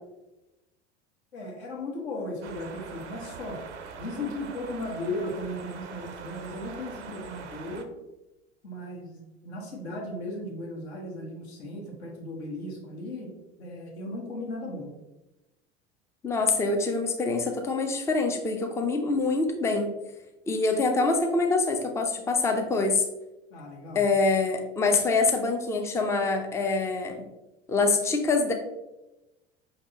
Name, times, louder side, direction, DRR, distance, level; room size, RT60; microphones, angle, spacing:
voice 1, 1.3-3.6 4.0-7.9 8.6-13.3 13.6-14.9 23.5-24.1, left 1 dB, 65° left, -1 dB, 1.3 m, -36 dB
sound 1, 2.4-7.9, right 5 dB, 75° right, 0.5 m, -42 dB
voice 2, 16.2-19.9 20.5-23.1 23.9-27.2 27.7-28.5, left 3 dB, 10° left, 4 dB, 0.4 m, -25 dB
5.5 x 3.3 x 2.8 m, 0.98 s
figure-of-eight pair, 75°, 36 cm